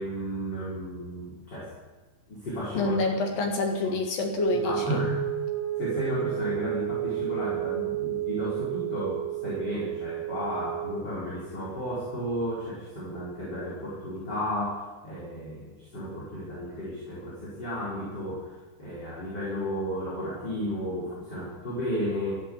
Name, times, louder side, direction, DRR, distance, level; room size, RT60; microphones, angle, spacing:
voice 1, 0.0-1.7 2.3-2.9 3.8-3.9 4.5-5.2 5.8-18.5 18.8-22.3, equal, 25° left, -7 dB, 4.6 m, -33 dB
voice 2, 2.7-5.0, left 3 dB, 60° left, 3 dB, 2.9 m, -28 dB
sound 1, 4.4-10.9, right 11 dB, 5° left, 1.7 m, -31 dB
14.5 x 11.0 x 8.6 m, 1.3 s
omnidirectional pair, 5.0 m